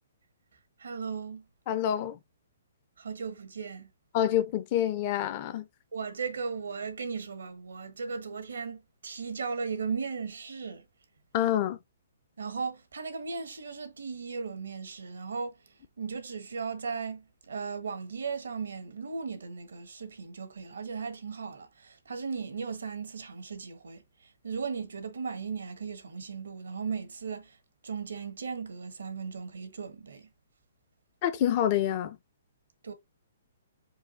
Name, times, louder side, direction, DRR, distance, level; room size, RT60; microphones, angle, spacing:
voice 1, 0.8-1.5 3.0-3.9 5.9-10.8 12.4-15.5 16.0-27.6 27.8-30.3 32.8-32.9, right 5 dB, 80° right, 1.3 m, -37 dB
voice 2, 1.7-2.2 4.1-5.7 11.3-11.8 31.2-32.2, left 11 dB, 40° left, 0.6 m, -27 dB
4.7 x 2.4 x 4.0 m
hypercardioid pair, 140°, 0 cm